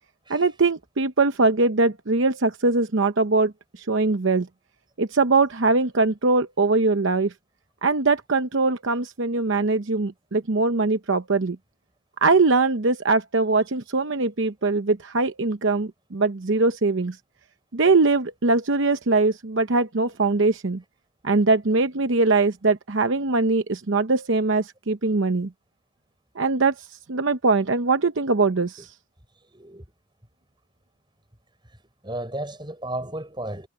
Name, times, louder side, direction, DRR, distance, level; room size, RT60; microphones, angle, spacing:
voice 1, 0.3-4.5 5.0-7.3 7.8-11.6 12.2-17.2 17.7-20.8 21.2-25.5 26.4-26.7 27.1-28.9, right 3 dB, 65° right, 0.8 m, -22 dB
voice 2, 28.5-28.9 29.5-29.9 32.0-33.7, right 1 dB, 20° right, 7.0 m, -34 dB
head